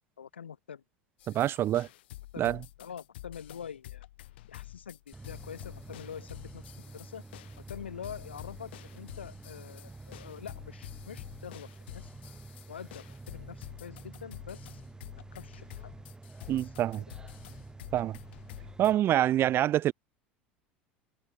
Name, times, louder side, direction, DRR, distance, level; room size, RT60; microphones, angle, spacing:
voice 1, 0.2-0.8 2.3-4.1 4.5-7.2 7.6-12.1 12.7-14.8 15.3-15.7 16.6-16.7, left 7 dB, 90° left, 0.7 m, -45 dB
sound 1, 1.2-18.9, left 16 dB, 75° left, 3.8 m, -49 dB
voice 2, 1.3-1.9 2.4-2.6 16.5-17.0 17.9-18.2 18.8-19.9, right 12 dB, 40° right, 0.5 m, -26 dB
sound 2, 5.1-18.9, right 3 dB, 15° right, 1.5 m, -48 dB
hypercardioid pair, 80°, 6 cm